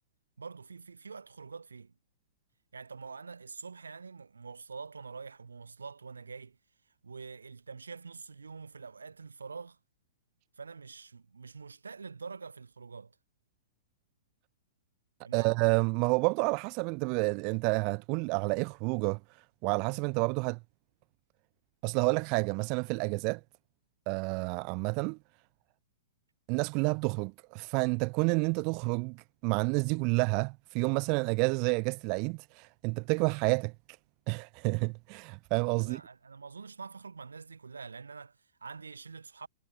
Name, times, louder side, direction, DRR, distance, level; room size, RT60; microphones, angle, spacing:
voice 1, 0.4-1.9 2.7-6.6 7.0-9.8 10.6-13.1 15.2-15.5 35.8-39.5, right 5 dB, 75° right, 3.4 m, -45 dB
voice 2, 15.3-19.2 19.6-20.6 21.8-23.4 24.1-25.2 26.5-33.7 34.3-36.0, right 33 dB, 35° right, 1.2 m, -29 dB
figure-of-eight pair, 105°, 0 cm